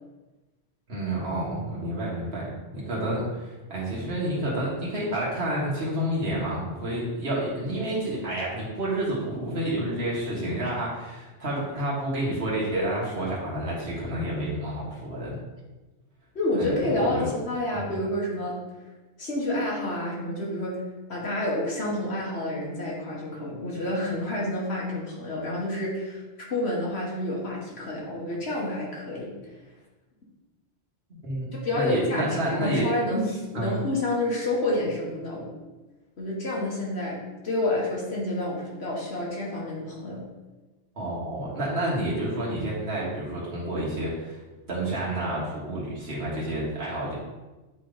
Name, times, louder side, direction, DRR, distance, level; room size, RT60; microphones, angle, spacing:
voice 1, 0.9-15.4 16.6-17.3 17.7-18.0 31.1-32.9 33.5-33.8 41.0-44.4 44.7-47.2, right 1 dB, 65° right, -6 dB, 1.8 m, -29 dB
voice 2, 16.4-18.6 19.2-20.8 21.1-26.2 26.5-29.3 31.6-35.5 36.2-40.2, left 1 dB, 75° left, -4 dB, 1.7 m, -29 dB
8.5 x 3.4 x 3.9 m, 1.2 s
omnidirectional pair, 1.1 m